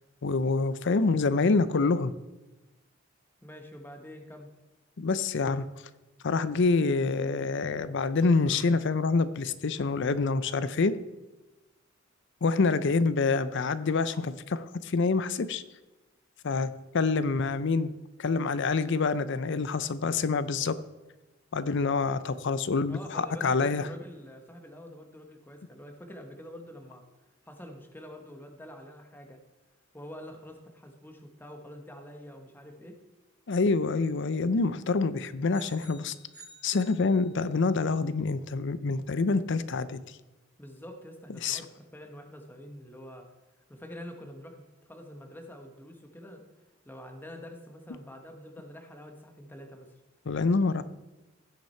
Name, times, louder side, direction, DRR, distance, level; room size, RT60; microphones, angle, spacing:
voice 1, 0.2-2.1 5.0-5.7 6.2-11.0 12.4-15.6 16.4-17.9 18.2-20.8 21.5-23.9 33.5-36.1 36.6-40.0 41.4-41.6 50.3-50.8, left 4 dB, 60° left, 15 dB, 0.6 m, -26 dB
voice 2, 3.4-4.5 22.9-27.0 27.4-29.4 29.9-33.0 40.6-43.3 43.7-46.4 46.8-50.0, equal, 10° left, 4 dB, 1.0 m, -46 dB
sound 1, 35.5-37.7, right 2 dB, 10° right, 3.0 m, -52 dB
16.0 x 5.9 x 4.4 m, 1.1 s
head